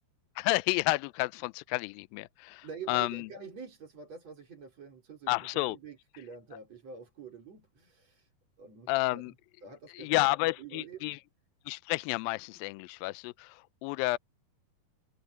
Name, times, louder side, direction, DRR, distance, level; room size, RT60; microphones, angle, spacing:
voice 1, 0.4-3.3 5.3-5.8 8.9-9.3 9.9-11.2 11.7-14.2, left 22 dB, 85° left, 2.1 m, -31 dB
voice 2, 2.6-8.3 8.6-9.3 9.6-11.2, right 5 dB, 40° right, 5.7 m, -47 dB
omnidirectional pair, 4.6 m